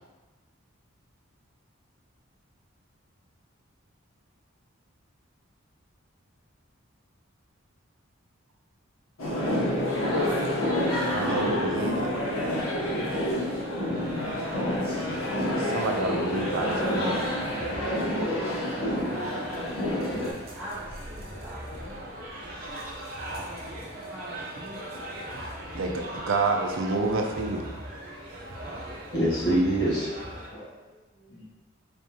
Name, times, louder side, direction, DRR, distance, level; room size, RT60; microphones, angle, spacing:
sound 1, 9.2-20.3, left 1 dB, 90° left, 1.0 m, -28 dB
voice 1, 11.1-12.1 15.5-17.5 25.8-27.6, right 3 dB, 70° right, 3 dB, 0.4 m, -29 dB
voice 2, 13.9-14.5 20.5-22.3 24.1-25.1 25.3-26.4 28.2-28.7 30.8-31.4, equal, 10° right, -10 dB, 1.4 m, -46 dB
sound 2, 13.9-30.5, right 1 dB, 45° right, 0.8 m, -40 dB
voice 3, 29.1-30.7 31.3-31.4, right 1 dB, 50° left, -8 dB, 1.5 m, -26 dB
4.1 x 3.5 x 2.8 m, 1.2 s
head